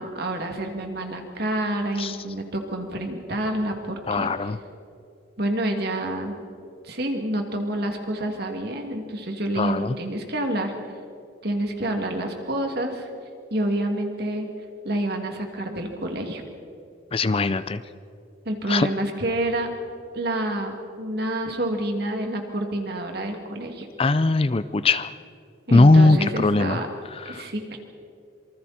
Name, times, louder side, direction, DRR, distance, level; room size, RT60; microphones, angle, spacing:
voice 1, 0.0-4.5 5.4-6.3 6.8-10.7 11.4-13.1 13.5-14.5 14.8-16.4 18.4-19.7 20.1-23.9 25.7-26.9 27.2-27.8, right 1 dB, 55° right, 3 dB, 2.6 m, -28 dB
voice 2, 4.1-4.6 9.6-9.9 17.1-17.8 18.7-18.9 24.0-25.1 25.7-26.8 27.3-27.4, left 2 dB, 30° left, 13 dB, 0.5 m, -19 dB
26.5 x 24.5 x 4.4 m, 2.6 s
head